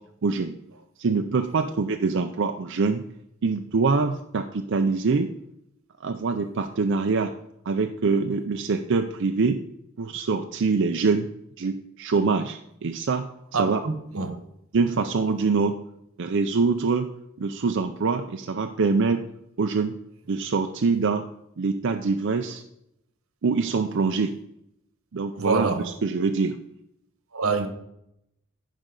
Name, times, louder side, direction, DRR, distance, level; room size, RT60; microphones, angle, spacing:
voice 1, 0.2-0.5 1.0-3.0 3.4-5.3 6.0-7.3 7.7-9.6 10.0-11.3 11.6-13.3 13.6-13.8 14.7-15.8 16.2-17.1 17.4-19.3 19.6-19.9 20.3-21.3 21.6-22.6 23.4-24.4 25.1-26.6, right 4 dB, 60° right, 0.5 m, -24 dB
voice 2, 13.5-14.4 25.4-25.9 27.3-27.7, right 4 dB, 85° right, 1.2 m, -26 dB
14.5 x 5.4 x 3.9 m
head